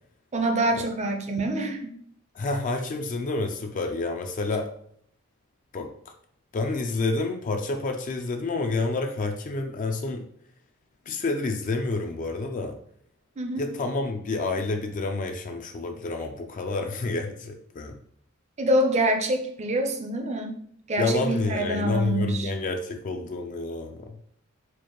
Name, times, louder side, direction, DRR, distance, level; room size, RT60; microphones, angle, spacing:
voice 1, 0.3-1.9 13.4-13.6 18.6-20.6 20.9-22.5, right 1 dB, 35° right, 5 dB, 0.5 m, -26 dB
voice 2, 2.3-4.7 5.7-5.9 6.5-10.3 11.1-12.8 13.6-17.9 21.0-24.2, left 3 dB, 40° left, 5 dB, 0.4 m, -29 dB
4.5 x 2.4 x 2.9 m, 0.66 s
head